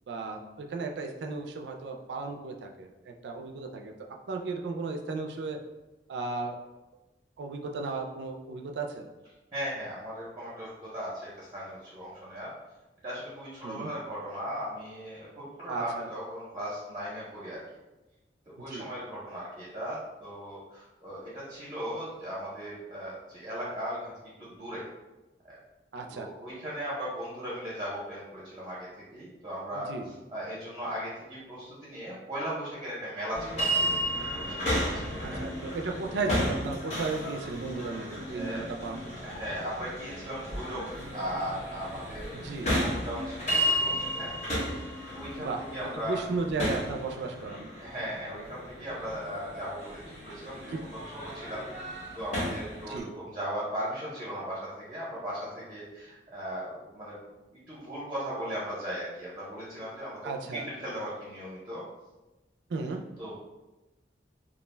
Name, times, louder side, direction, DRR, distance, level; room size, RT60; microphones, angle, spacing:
voice 1, 0.1-3.9 4.3-5.6 6.1-6.6 7.4-9.1 13.6-13.9 15.7-16.1 18.7-18.9 25.9-26.3 29.7-30.1 35.2-39.4 42.3-42.7 45.4-45.6 46.0-47.7 50.7-50.8 52.9-53.1 60.2-60.7 62.7-63.0, right 3 dB, 80° right, 3 dB, 0.3 m, -35 dB
voice 2, 9.5-12.6 13.0-17.6 18.4-24.1 24.4-24.8 26.1-33.9 34.4-35.5 38.3-38.6 39.2-44.3 44.7-46.2 47.8-51.7 52.1-57.2 57.5-61.8 63.2-63.4, equal, 25° right, -8 dB, 0.6 m, -38 dB
sound 1, 33.3-53.0, equal, 40° left, 0.8 m, -33 dB
2.3 x 2.1 x 3.2 m, 1.1 s
head